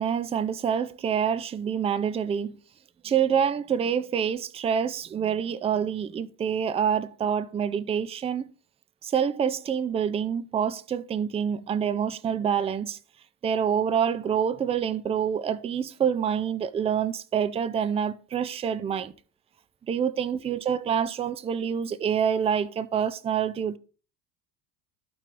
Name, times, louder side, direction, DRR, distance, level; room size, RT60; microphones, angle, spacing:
voice 1, 0.0-2.6 3.0-8.5 9.0-13.0 13.4-19.1 19.8-23.8, right 8 dB, 15° right, 0.4 m, -27 dB
13.5 x 4.5 x 3.7 m
hypercardioid pair, 80°, 49 cm